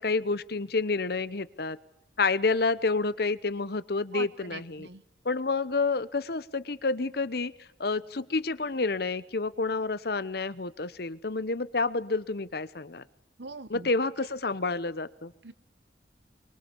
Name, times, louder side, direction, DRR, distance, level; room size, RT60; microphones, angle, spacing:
voice 1, 0.0-1.8 2.2-4.9 5.2-7.5 7.8-13.0 13.7-15.3, left 3 dB, 60° left, 16 dB, 0.9 m, -29 dB
voice 2, 4.1-5.0 13.4-13.9 15.4-15.5, right 3 dB, 70° right, 15 dB, 1.1 m, -41 dB
24.0 x 22.5 x 7.0 m, 0.82 s
head